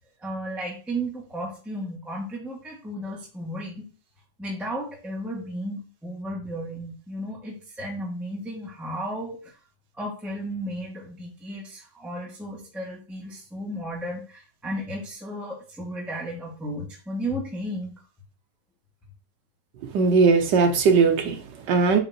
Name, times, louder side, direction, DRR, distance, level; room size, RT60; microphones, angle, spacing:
voice 1, 0.2-3.9 4.4-9.5 10.0-18.0, right 1 dB, ahead, 1.4 m, -34 dB
voice 2, 19.9-22.0, right 4 dB, 65° right, 1.5 m, -19 dB
8.7 x 4.2 x 2.8 m
omnidirectional pair, 2.1 m